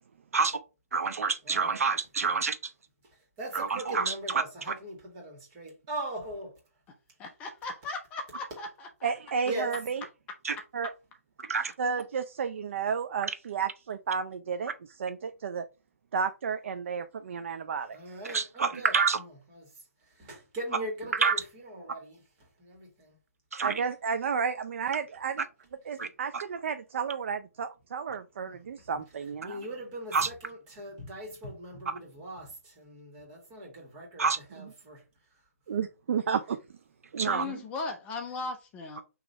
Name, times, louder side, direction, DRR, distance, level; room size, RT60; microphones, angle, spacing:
voice 1, 0.9-2.6 3.5-4.4 10.4-10.5 11.5-11.7 18.3-19.2 21.2-21.3 23.5-23.7 26.0-26.1 26.3-26.4 30.1-30.3 34.2-34.4 37.2-37.4, right 5 dB, 70° right, 0.8 m, -27 dB
voice 2, 1.4-1.8 3.4-6.6 9.5-9.8 17.9-19.7 20.1-22.2 22.6-23.2 28.4-28.6 29.4-35.0, right 1 dB, 25° right, 1.9 m, -40 dB
voice 3, 7.2-9.1 37.3-39.0, left 3 dB, 15° left, 0.5 m, -37 dB
voice 4, 9.0-10.0 10.7-10.9 11.8-15.6 16.1-18.2 23.6-25.5 25.9-29.6 34.6-34.7 35.7-36.6 37.1-37.6, right 6 dB, 50° right, 0.4 m, -32 dB
3.9 x 2.9 x 4.5 m
figure-of-eight pair, 140°, 8 cm